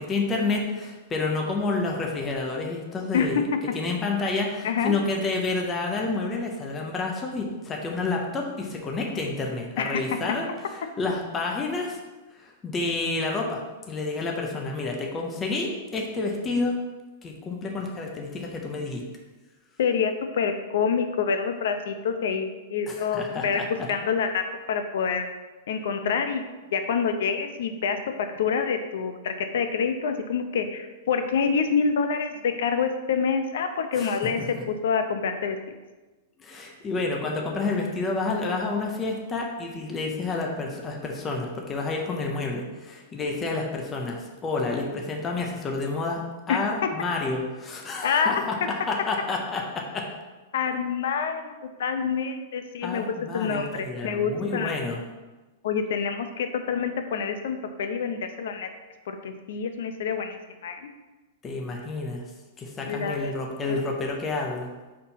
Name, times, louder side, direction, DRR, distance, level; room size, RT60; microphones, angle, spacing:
voice 1, 0.0-3.5 3.7-12.0 12.3-16.8 17.2-19.0 22.9-23.9 34.0-34.6 36.4-46.2 46.5-50.1 52.8-55.0 61.4-62.2 62.6-64.7, left 3 dB, 15° left, 0 dB, 0.6 m, -29 dB
voice 2, 3.1-3.6 4.6-4.9 9.8-10.0 19.8-23.6 23.9-25.3 25.7-35.6 46.5-46.7 48.0-48.4 50.5-51.5 51.8-53.1 53.3-54.8 55.6-58.7 59.1-60.8 62.9-63.3 63.7-63.8, left 6 dB, 65° left, 7 dB, 0.5 m, -27 dB
4.3 x 4.1 x 5.6 m, 1.2 s
supercardioid pair, 175°, 0 cm